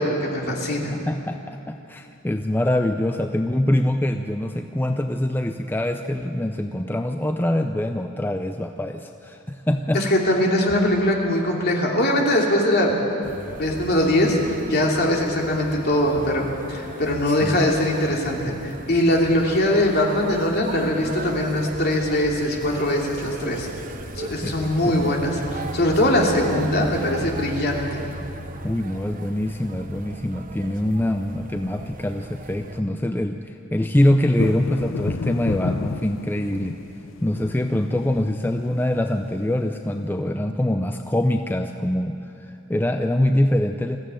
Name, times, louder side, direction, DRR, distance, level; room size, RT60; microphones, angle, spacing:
voice 1, 0.0-0.9 9.9-12.9 13.6-23.7 24.2-28.0, left 1 dB, 50° left, -1 dB, 3.0 m, -21 dB
voice 2, 0.9-10.0 17.4-17.6 24.4-25.1 28.6-36.8 37.2-44.0, left 1 dB, 10° left, 6 dB, 0.5 m, -24 dB
sound 1, 13.2-32.8, right 2 dB, 40° right, 0.9 m, -37 dB
sound 2, 34.4-39.8, left 4 dB, 70° left, 0.5 m, -32 dB
21.0 x 14.5 x 9.0 m, 2.8 s
head